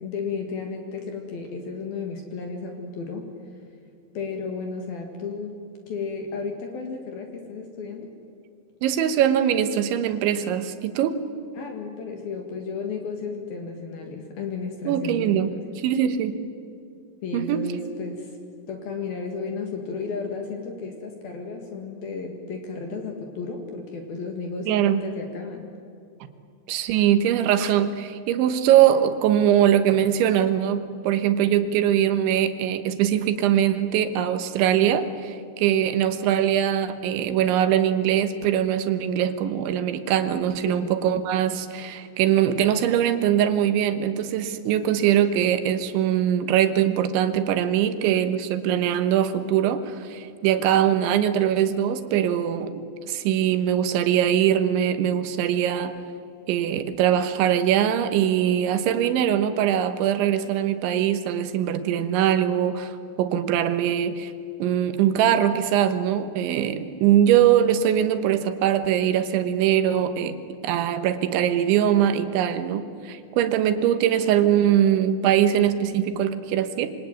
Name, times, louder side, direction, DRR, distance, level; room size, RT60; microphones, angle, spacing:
voice 1, 0.0-3.4 4.1-5.6 5.9-8.1 11.6-15.7 17.2-18.4 18.7-25.7 40.7-41.1, left 4 dB, 55° left, 4 dB, 3.2 m, -33 dB
voice 2, 8.8-11.2 14.9-15.5 15.8-16.4 17.3-17.7 24.7-25.0 26.7-55.9 56.5-64.3 64.6-70.4 70.6-77.0, right 10 dB, 70° right, 10 dB, 3.3 m, -22 dB
26.0 x 24.5 x 9.3 m, 2.4 s
omnidirectional pair, 5.9 m